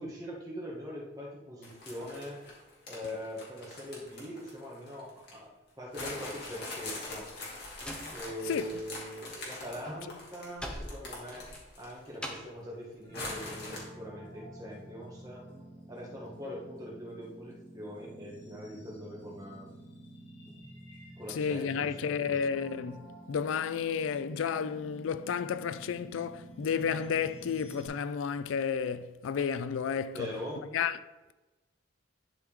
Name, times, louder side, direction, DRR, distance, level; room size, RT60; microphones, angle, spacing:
voice 1, 0.0-2.4 2.9-5.5 5.8-7.3 8.1-11.5 11.8-15.5 15.9-19.7 21.2-22.4 30.1-30.6, equal, 20° right, 1.8 m, -42 dB
sound 1, 1.6-5.4 5.9-12.1 12.4-12.5 13.1-13.8, left 2 dB, 55° left, 2.4 m, -43 dB
Slam, 7.2-8.9 9.1-12.6, equal, 5° left, 0.7 m, -44 dB
sound 2, 13.0-27.9, right 1 dB, 25° left, 2.9 m, -50 dB
voice 2, 21.3-30.3 30.7-31.0, left 7 dB, 85° left, 0.4 m, -32 dB
11.0 x 4.6 x 3.6 m
head